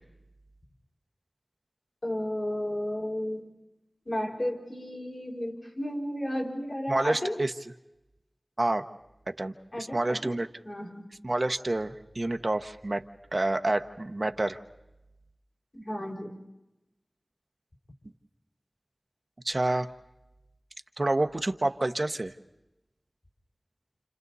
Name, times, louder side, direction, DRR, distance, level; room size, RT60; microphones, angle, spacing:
voice 1, 2.0-3.5 4.0-7.4 9.7-10.3 10.6-11.1 15.7-16.3, left 1 dB, 55° left, -1 dB, 5.0 m, -33 dB
voice 2, 6.9-7.5 8.6-8.8 9.3-10.5 11.2-13.0 13.3-14.6 19.4-19.9 21.0-22.3, right 2 dB, 55° right, 7 dB, 1.0 m, -28 dB
29.5 x 29.5 x 4.1 m, 0.95 s
wide cardioid pair, 45°, 0 cm